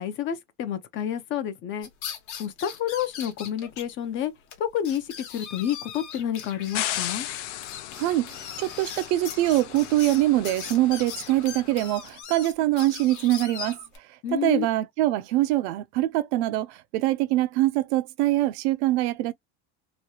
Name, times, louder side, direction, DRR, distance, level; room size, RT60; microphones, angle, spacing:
voice 1, 0.0-1.9 2.4-4.3 4.6-7.3 14.2-14.7, left 10 dB, 40° left, 0.5 m, -29 dB
sound 1, 1.8-3.8 4.1-4.2 4.5-4.6 4.8-14.0, left 8 dB, 60° left, 1.1 m, -40 dB
sound 2, 6.7-11.9, left 13 dB, 85° left, 0.6 m, -36 dB
voice 2, 8.0-13.8 14.3-19.3, right 15 dB, 80° right, 0.5 m, -24 dB
3.1 x 2.2 x 2.7 m
cardioid pair, 150°, 33 cm